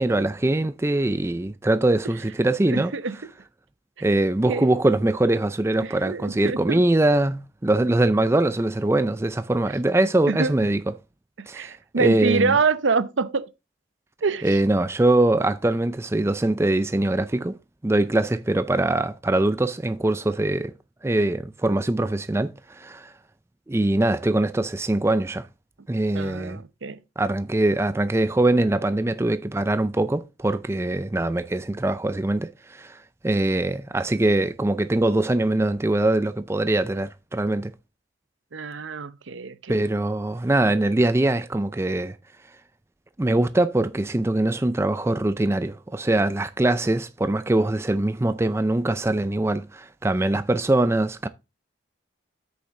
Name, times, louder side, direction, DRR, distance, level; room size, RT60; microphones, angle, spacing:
voice 1, 0.0-2.9 4.0-10.8 11.5-12.6 14.4-17.6 17.8-20.7 21.0-23.1 23.7-25.5 25.9-26.6 27.2-33.0 33.2-37.7 39.7-42.2 43.2-51.3, right 2 dB, 15° right, 0.4 m, -22 dB
voice 2, 2.7-3.2 4.5-4.7 5.8-6.8 10.3-10.5 11.4-13.5 14.2-14.5 26.1-27.0 38.5-39.8, right 4 dB, 80° right, 0.7 m, -26 dB
8.1 x 6.6 x 3.7 m
head